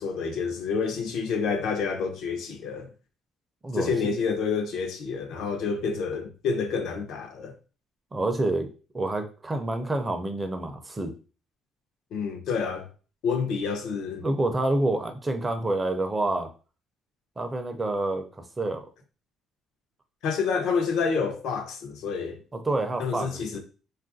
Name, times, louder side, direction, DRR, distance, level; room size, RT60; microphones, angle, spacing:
voice 1, 0.0-2.9 3.7-7.5 12.1-12.9 13.2-14.2 20.2-22.4 23.0-23.6, left 5 dB, 70° left, 0.6 m, -28 dB
voice 2, 8.1-8.7 8.9-11.1 14.2-16.5 17.4-18.2 18.6-18.8 22.5-23.6, right 2 dB, 15° right, 0.4 m, -28 dB
3.2 x 2.4 x 2.5 m
cardioid pair, 150°, 0 cm